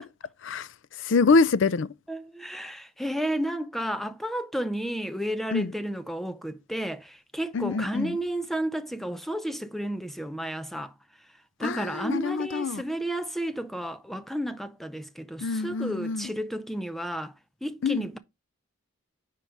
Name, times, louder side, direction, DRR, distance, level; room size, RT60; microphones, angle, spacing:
voice 1, 0.4-0.7 1.0-1.9 5.5-5.7 7.5-8.2 11.6-12.8 15.4-16.3 17.8-18.1, left 4 dB, 60° left, 0.4 m, -25 dB
voice 2, 2.1-10.9 11.6-17.3 17.6-18.2, right 1 dB, ahead, 0.5 m, -32 dB
10.0 x 3.7 x 4.6 m
head